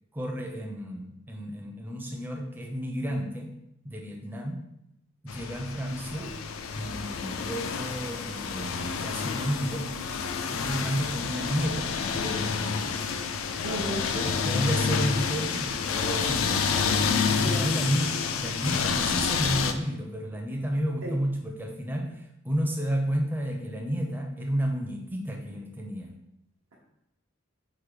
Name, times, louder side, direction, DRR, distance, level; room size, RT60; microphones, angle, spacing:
voice 1, 0.1-3.6 3.8-4.6 5.2-6.3 6.7-9.9 10.5-13.0 14.1-26.1, equal, 10° right, 1 dB, 0.5 m, -32 dB
sound 1, 5.3-19.7, left 6 dB, 80° left, 0.4 m, -29 dB
voice 2, 13.6-14.1 17.4-17.6 21.0-21.2, right 1 dB, 80° right, -5 dB, 0.8 m, -34 dB
4.9 x 2.1 x 4.7 m, 0.84 s
head